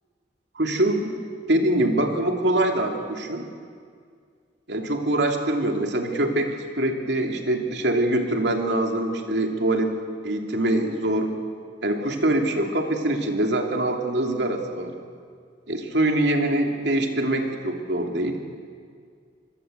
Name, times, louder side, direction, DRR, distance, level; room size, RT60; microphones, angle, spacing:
voice 1, 0.5-1.1 1.5-3.5 4.7-10.0 10.2-11.3 11.8-14.9 15.7-18.4, right 1 dB, 70° right, 3 dB, 3.0 m, -24 dB
26.5 x 20.5 x 8.0 m, 2.1 s
head